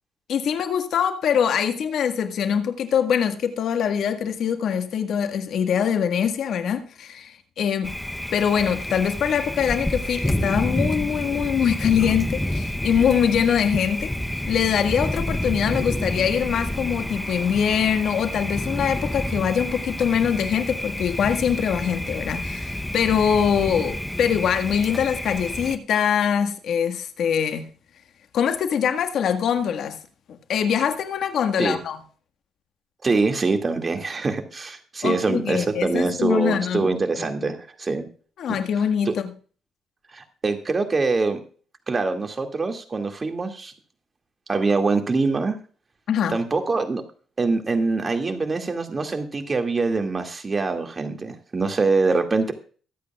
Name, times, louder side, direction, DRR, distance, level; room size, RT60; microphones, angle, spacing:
voice 1, 0.3-7.9 8.3-27.7 28.3-30.0 30.3-32.0 35.0-36.9 37.2-37.3 38.4-39.3 46.1-46.4, left 8 dB, 70° left, 1.6 m, -23 dB
Thunder, 7.8-25.8, left 1 dB, 5° left, 0.8 m, -29 dB
voice 2, 33.0-38.0 38.5-38.6 39.0-39.1 40.1-41.4 41.9-43.7 44.5-45.6 46.3-47.0 47.4-52.5, right 3 dB, 30° right, 2.2 m, -24 dB
23.5 x 8.5 x 2.4 m
cardioid pair, 90°, 0 cm